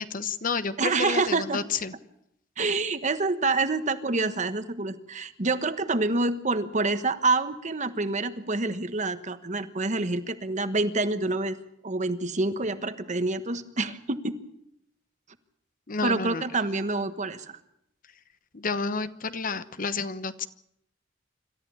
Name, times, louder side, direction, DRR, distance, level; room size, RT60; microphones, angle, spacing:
voice 1, 0.0-1.9 15.9-16.4 18.5-20.5, left 4 dB, 45° left, 12 dB, 1.0 m, -30 dB
voice 2, 0.8-1.6 2.6-11.6 11.8-14.4 16.0-17.6, right 3 dB, 40° right, 11 dB, 1.3 m, -27 dB
26.5 x 13.5 x 8.6 m, 0.76 s
head